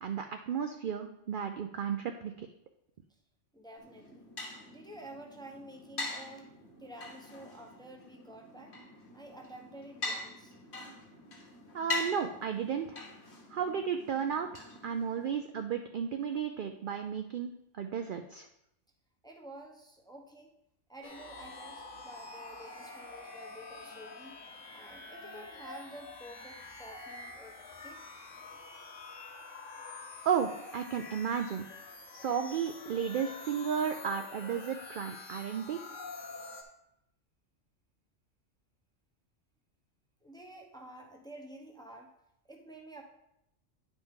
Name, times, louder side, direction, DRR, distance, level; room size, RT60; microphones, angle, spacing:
voice 1, 0.0-2.5 11.7-13.0 13.5-17.5 17.8-18.5 30.3-31.7 32.1-35.8, right 7 dB, 60° right, 6 dB, 0.5 m, -33 dB
voice 2, 3.5-4.3 4.7-6.5 6.8-8.8 9.1-10.5 19.2-20.5 20.9-28.0 40.2-42.1 42.5-43.0, right 1 dB, 5° left, 2 dB, 0.7 m, -50 dB
sound 1, 3.8-15.4, left 2 dB, 60° left, 1.7 m, -43 dB
sound 2, 21.0-36.6, left 3 dB, 80° left, 1.3 m, -47 dB
9.9 x 5.2 x 3.7 m, 0.80 s
omnidirectional pair, 1.3 m